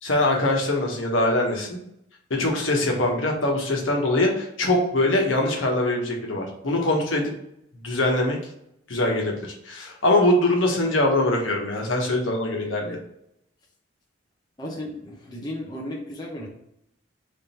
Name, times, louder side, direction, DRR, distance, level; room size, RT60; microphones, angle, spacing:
voice 1, 0.0-1.8 2.3-7.3 7.8-8.4 8.9-13.0, left 1 dB, 80° left, 0 dB, 1.2 m, -23 dB
voice 2, 14.6-16.5, left 1 dB, 20° left, -2 dB, 0.7 m, -34 dB
3.7 x 3.4 x 4.3 m, 0.77 s
head